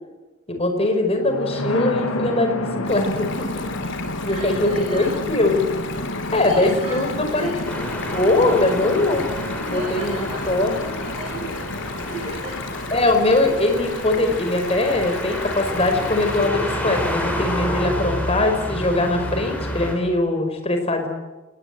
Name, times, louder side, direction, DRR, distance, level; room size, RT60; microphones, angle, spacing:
voice 1, 0.5-3.9 4.2-5.6 6.3-7.5 8.1-9.3 9.7-10.7 12.9-21.1, left 2 dB, 30° left, 5 dB, 5.2 m, -21 dB
sound 1, 1.2-17.1, left 2 dB, 80° left, 2.8 m, -31 dB
Stream, 2.9-16.5, left 4 dB, 55° left, 3.6 m, -37 dB
voice 2, 4.2-5.2 6.3-7.6 9.5-11.6 12.0-12.6, right 2 dB, 25° right, 0 dB, 5.9 m, -36 dB
sound 2, 7.6-19.9, equal, 5° left, 7.0 m, -30 dB
30.0 x 19.5 x 10.0 m, 1.2 s
head